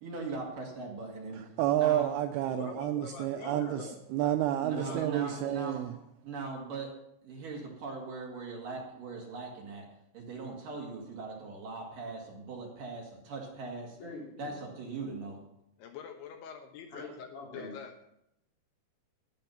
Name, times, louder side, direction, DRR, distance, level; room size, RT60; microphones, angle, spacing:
voice 1, 0.0-2.1 4.6-5.8 6.2-6.9 7.2-9.9 10.1-14.0 14.4-15.4, right 4 dB, 55° right, -1 dB, 3.3 m, -40 dB
voice 2, 1.3-5.9, right 12 dB, 90° right, 8 dB, 2.2 m, -30 dB
voice 3, 2.5-4.0 4.7-5.6 15.8-17.9, left 7 dB, 75° left, 5 dB, 2.9 m, -45 dB
voice 4, 3.4-3.8 14.0-14.6 16.9-17.7, left 2 dB, 45° left, -4 dB, 5.3 m, -44 dB
13.5 x 10.0 x 5.7 m, 0.80 s
omnidirectional pair, 5.2 m